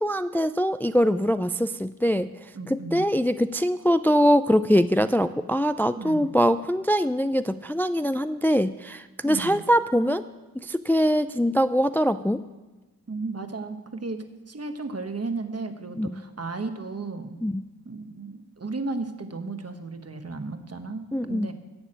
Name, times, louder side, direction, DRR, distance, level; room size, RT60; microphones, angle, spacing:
voice 1, 0.0-10.2 10.6-12.4 16.0-16.2 17.4-17.6 21.1-21.5, equal, 5° left, 12 dB, 0.3 m, -23 dB
voice 2, 2.5-3.1 6.0-6.3 9.2-9.6 13.1-17.4 17.8-21.5, right 3 dB, 45° right, 7 dB, 1.2 m, -34 dB
11.0 x 7.2 x 8.7 m, 1.1 s
cardioid pair, 50°, 36 cm